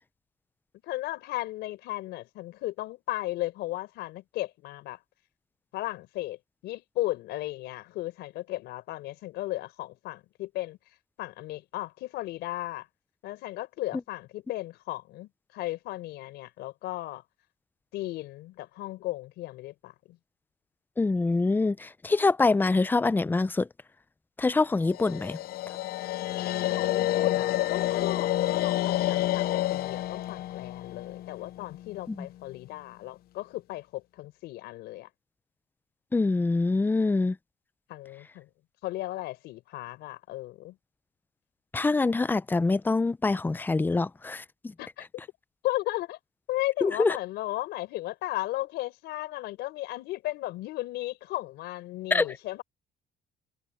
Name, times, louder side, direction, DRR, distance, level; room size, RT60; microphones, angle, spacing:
voice 1, 0.9-5.0 5.7-6.4 6.6-10.8 11.2-12.9 13.2-17.2 17.9-20.2 26.7-35.1 37.9-38.5 38.8-40.8 44.8-45.1 45.6-46.2 46.5-52.6, left 17 dB, 85° left, 4.4 m, -35 dB
voice 2, 21.0-23.7 24.4-25.4 32.1-32.3 36.1-37.4 41.7-44.7 46.8-47.2 52.1-52.3, left 3 dB, 10° left, 0.5 m, -25 dB
sound 1, 24.9-32.0, left 14 dB, 65° left, 0.6 m, -29 dB
cardioid pair, 110°, 17 cm